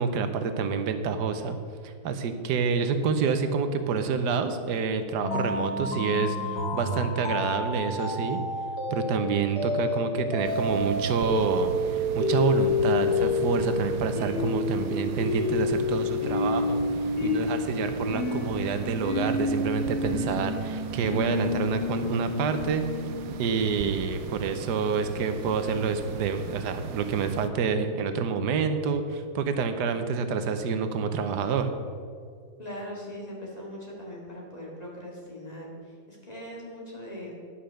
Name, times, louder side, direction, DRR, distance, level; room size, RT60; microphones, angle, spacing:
voice 1, 0.0-1.6 1.8-8.4 8.9-16.8 17.2-22.8 23.4-31.7, right 5 dB, 85° right, 9 dB, 1.3 m, -28 dB
sound 1, 5.2-23.7, left 3 dB, 80° left, 2.8 m, -29 dB
sound 2, 10.4-27.5, right 6 dB, 70° right, 1.0 m, -39 dB
voice 2, 32.6-37.3, equal, 25° left, -4 dB, 2.2 m, -40 dB
10.5 x 5.7 x 6.4 m, 2.2 s
omnidirectional pair, 1.7 m